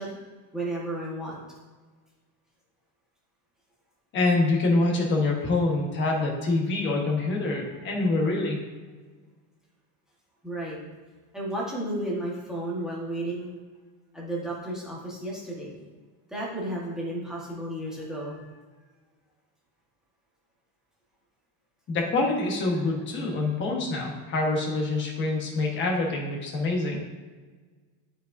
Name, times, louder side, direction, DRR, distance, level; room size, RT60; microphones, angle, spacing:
voice 1, 0.0-1.4 7.9-8.0 10.4-10.8 11.3-13.5 14.1-15.7 16.3-18.6, right 1 dB, ahead, -5 dB, 1.3 m, -33 dB
voice 2, 4.1-8.6 21.9-27.0, left 2 dB, 25° left, 0 dB, 1.2 m, -25 dB
11.0 x 5.0 x 2.6 m, 1.4 s
cardioid pair, 175°, 44 cm